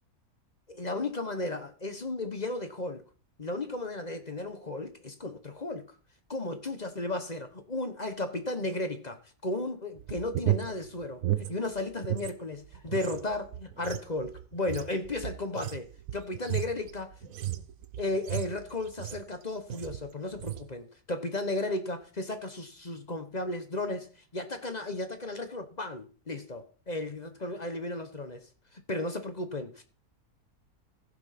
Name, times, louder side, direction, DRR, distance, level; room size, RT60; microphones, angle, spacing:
voice 1, 0.7-3.0 3.4-5.9 6.3-9.2 9.4-17.1 18.0-28.5 28.7-29.8, left 2 dB, 30° left, 1.1 m, -34 dB
sound 1, 10.0-12.3 12.6-19.3 19.7-20.1 20.3-20.7, right 13 dB, 65° right, 1.1 m, -34 dB
15.0 x 5.7 x 5.9 m
omnidirectional pair, 1.7 m